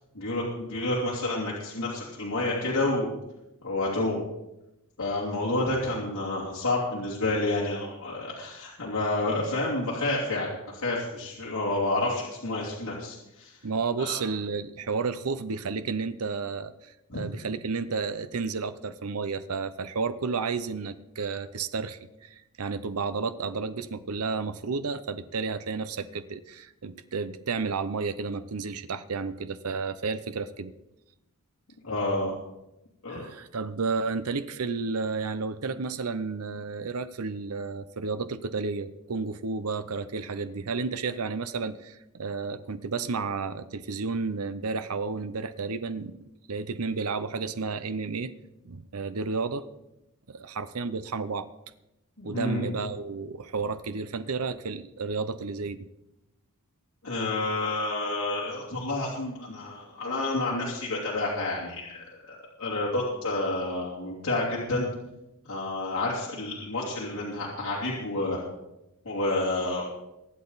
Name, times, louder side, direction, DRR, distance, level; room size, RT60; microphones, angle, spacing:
voice 1, 0.1-3.1 3.6-4.2 5.0-10.5 10.8-13.5 14.0-14.2 17.1-17.2 31.8-32.3 33.0-33.3 52.2-52.7 57.0-64.9 65.4-68.4 69.0-69.9, left 2 dB, 80° left, -6 dB, 3.2 m, -29 dB
voice 2, 13.6-30.7 33.1-46.2 46.5-48.3 48.6-49.7 50.3-51.5 52.2-55.9, right 4 dB, 85° right, 12 dB, 0.8 m, -32 dB
23.5 x 8.9 x 4.1 m, 0.91 s
head